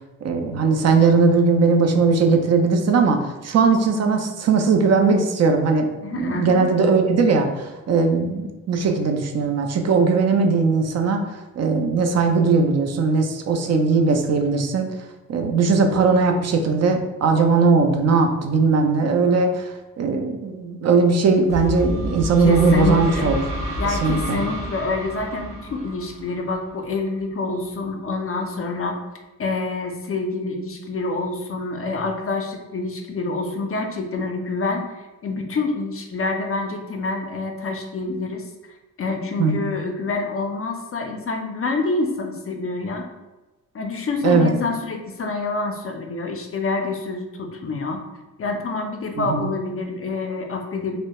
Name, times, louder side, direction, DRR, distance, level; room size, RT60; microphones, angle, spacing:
voice 1, 0.2-5.9 6.1-11.2 11.6-14.9 15.3-19.7 20.0-23.4 24.0-24.4 39.4-39.6 44.2-44.5 49.2-49.5, right 4 dB, 45° right, 4 dB, 0.5 m, -19 dB
voice 2, 6.0-6.7 22.4-23.3 23.8-29.0 29.4-38.5 39.0-43.1 43.7-48.0 48.4-51.0, left 3 dB, 40° left, 3 dB, 0.4 m, -27 dB
sound 1, 21.5-27.1, equal, 85° right, 0.9 m, -30 dB
2.1 x 2.1 x 2.8 m, 1.1 s
supercardioid pair, 55°, 36 cm